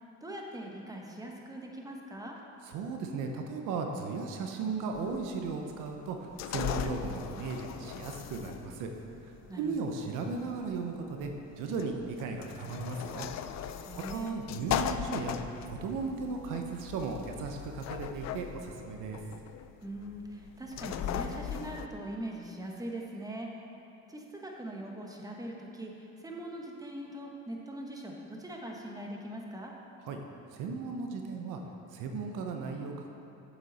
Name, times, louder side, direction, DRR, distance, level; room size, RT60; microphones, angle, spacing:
voice 1, 0.2-2.4 9.5-9.9 13.9-14.4 19.8-23.5 24.1-29.7, right 1 dB, 10° right, 0 dB, 1.3 m, -41 dB
voice 2, 2.7-8.9 9.6-11.3 11.6-13.3 14.1-15.4 15.7-19.2 30.0-30.2 30.5-31.6 31.9-33.1, right 4 dB, 80° right, 3 dB, 0.8 m, -36 dB
sound 1, 4.9-21.9, left 9 dB, 60° left, 0.5 m, -39 dB
8.1 x 7.3 x 4.1 m, 2.9 s
supercardioid pair, 75°, 31 cm